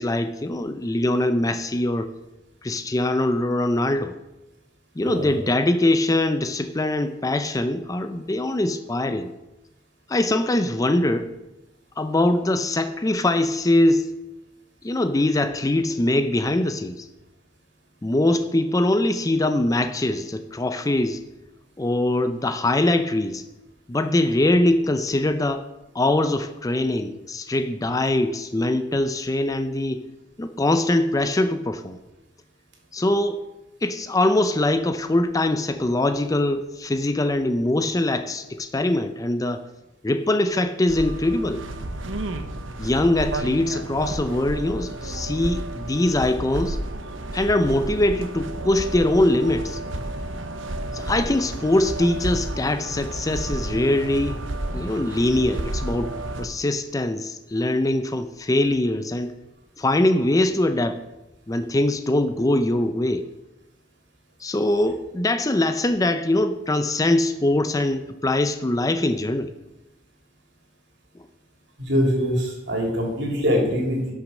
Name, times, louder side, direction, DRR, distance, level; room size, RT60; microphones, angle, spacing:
voice 1, 0.0-2.1 2.6-4.1 5.0-9.3 10.1-11.3 12.0-14.1 14.8-17.1 18.0-21.2 21.8-23.4 23.9-25.6 25.9-30.0 30.4-32.0 32.9-33.4 33.8-39.6 40.0-41.6 42.8-46.8 47.3-49.8 50.9-54.4 54.7-59.3 59.8-61.0 61.5-63.2 64.4-69.5, left 1 dB, 20° left, 9 dB, 0.4 m, -22 dB
sound 1, 40.9-56.5, right 2 dB, 75° right, 1.0 m, -31 dB
voice 2, 71.8-74.1, equal, 60° right, 0 dB, 3.1 m, -23 dB
11.5 x 6.0 x 6.4 m, 0.99 s
head